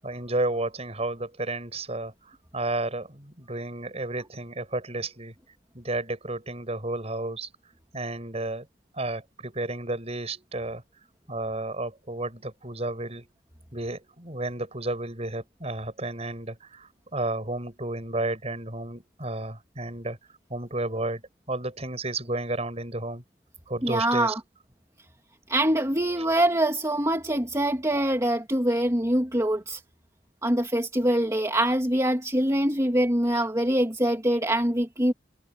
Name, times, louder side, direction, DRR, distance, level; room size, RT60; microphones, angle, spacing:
voice 1, 0.0-5.3 5.7-7.5 7.9-8.7 8.9-10.8 11.3-13.3 13.7-20.2 20.5-21.2 21.5-23.2 23.7-24.3 26.2-26.3, right 2 dB, 35° right, 7.8 m, -32 dB
voice 2, 23.8-24.4 25.5-29.8 30.4-35.1, right 1 dB, 20° right, 2.6 m, -24 dB
head